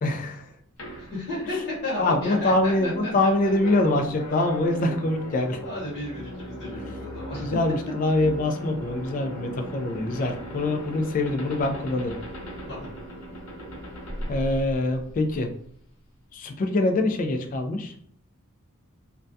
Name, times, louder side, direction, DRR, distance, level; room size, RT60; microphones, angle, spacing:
voice 1, 0.0-0.5 2.0-5.6 7.4-12.2 14.3-15.5 16.3-17.9, left 2 dB, 35° left, 4 dB, 0.3 m, -24 dB
sound 1, 0.8-15.3, right 1 dB, 80° left, 0.8 m, -38 dB
voice 2, 1.0-3.1 5.6-7.6 12.7-12.9, left 2 dB, 55° left, -7 dB, 1.0 m, -33 dB
2.2 x 2.2 x 2.6 m, 0.62 s
head